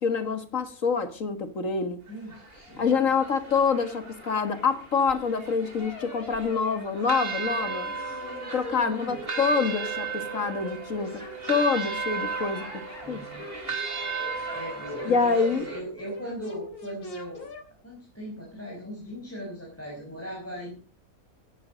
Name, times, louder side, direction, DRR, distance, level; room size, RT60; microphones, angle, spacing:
voice 1, 0.0-2.0 2.8-7.9 8.5-13.2 15.0-15.7, left 5 dB, 60° left, 2.0 m, -26 dB
voice 2, 2.1-3.0 7.7-8.5 8.8-9.2 13.0-13.8 14.5-17.5 17.8-20.8, equal, 10° left, 5.2 m, -39 dB
sound 1, 2.1-15.8, right 5 dB, 40° right, 3.5 m, -36 dB
sound 2, 5.8-7.2 7.4-7.6 8.0-11.9 12.3-13.1 13.4-15.5 16.0-17.7, left 4 dB, 75° left, 3.9 m, -42 dB
16.5 x 11.5 x 5.1 m
omnidirectional pair, 1.6 m